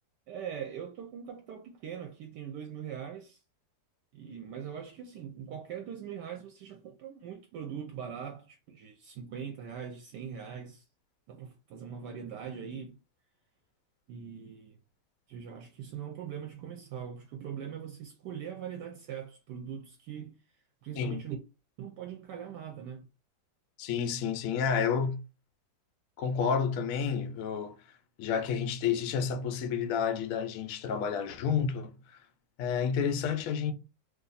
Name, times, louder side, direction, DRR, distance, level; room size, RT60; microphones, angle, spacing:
voice 1, 0.3-3.4 4.1-10.8 11.3-13.0 14.1-14.8 15.3-20.3 20.8-21.4 21.8-23.1, right 8 dB, 75° right, 1.1 m, -41 dB
voice 2, 23.8-25.2 26.2-27.8 28.2-32.2 32.6-33.7, left 7 dB, 75° left, 0.7 m, -30 dB
2.8 x 2.6 x 3.9 m
omnidirectional pair, 2.0 m